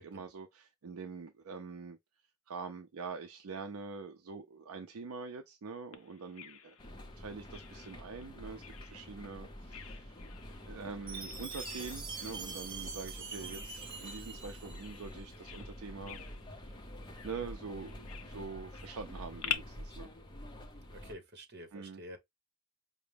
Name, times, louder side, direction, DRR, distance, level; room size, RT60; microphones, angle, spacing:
voice 1, 0.0-2.0 2.5-6.8 7.2-10.2 10.7-16.2 16.6-16.8 17.2-20.1 21.7-22.0, right 4 dB, 70° right, 0.5 m, -44 dB
Bird vocalization bird call bird song, 5.9-19.6, left 9 dB, 70° left, 0.6 m, -47 dB
sound 1, 6.8-21.1, equal, 20° left, 0.6 m, -48 dB
Chime, 11.1-15.2, right 5 dB, 25° right, 1.1 m, -44 dB
voice 2, 20.9-22.2, equal, 50° right, 1.1 m, -48 dB
4.9 x 2.1 x 3.3 m
head